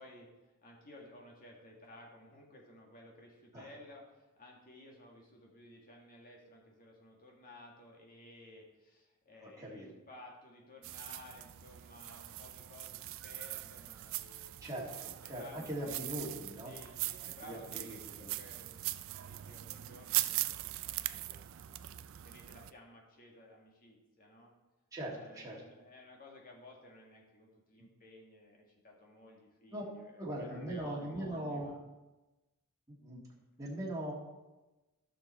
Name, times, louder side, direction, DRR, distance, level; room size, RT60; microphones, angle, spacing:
voice 1, 0.0-16.0 16.6-21.8 22.2-24.5 25.1-31.8, left 1 dB, 40° left, -1 dB, 1.9 m, -56 dB
voice 2, 9.4-10.0 14.6-16.7 17.2-18.3 21.2-21.4 24.9-25.6 27.8-27.9 29.7-29.8 30.2-31.7 32.9-33.2 33.6-34.1, right 1 dB, 15° right, -6 dB, 1.8 m, -41 dB
sound 1, 10.8-22.7, right 16 dB, 60° right, 0.4 m, -41 dB
12.0 x 6.7 x 4.2 m, 1.1 s
head